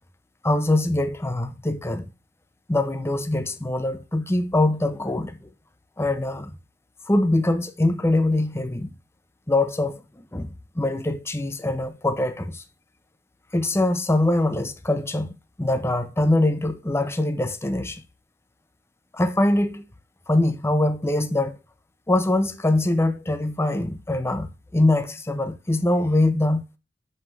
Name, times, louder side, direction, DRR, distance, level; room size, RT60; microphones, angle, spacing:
voice 1, 0.4-2.1 2.7-5.4 6.0-6.5 7.1-8.9 9.5-10.0 10.3-12.6 13.5-15.3 15.6-18.0 19.1-19.8 20.3-21.6 22.1-26.6, left 1 dB, 15° left, 0.7 m, -23 dB
6.5 x 5.6 x 4.6 m
head